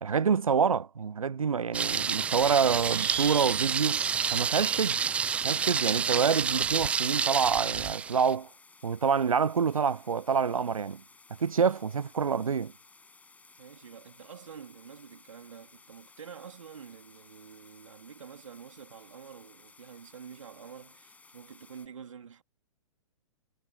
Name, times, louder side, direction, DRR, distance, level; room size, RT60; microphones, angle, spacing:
voice 1, 0.0-4.0 4.3-5.0 5.4-8.5 8.8-11.0 11.4-12.7, right 6 dB, 80° right, 0.4 m, -27 dB
Thunder, 1.7-8.3, right 6 dB, 5° right, 0.3 m, -29 dB
sound 1, 1.8-6.9, right 13 dB, 45° right, 0.7 m, -41 dB
sound 2, 6.7-21.9, left 4 dB, 10° left, 5.8 m, -57 dB
voice 2, 13.6-22.4, right 7 dB, 65° right, 2.3 m, -48 dB
figure-of-eight pair, 115°, 17 cm